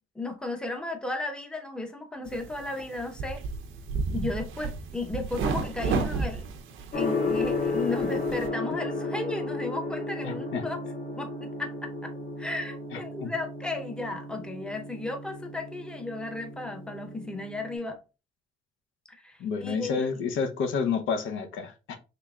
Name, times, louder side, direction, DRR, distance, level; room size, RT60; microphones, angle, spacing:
voice 1, 0.2-3.4 4.1-6.5 6.9-10.8 11.2-12.1 12.4-18.0 19.1-20.3, left 2 dB, 5° left, 0.7 m, -35 dB
sound 1, 2.2-8.5, right 4 dB, 85° right, 0.6 m, -33 dB
Gong, 6.9-17.8, left 3 dB, 40° left, 1.8 m, -33 dB
voice 2, 10.2-10.6 12.9-13.3 19.4-22.0, left 5 dB, 80° left, 0.7 m, -30 dB
3.8 x 3.3 x 2.3 m
cardioid pair, 90°, 20 cm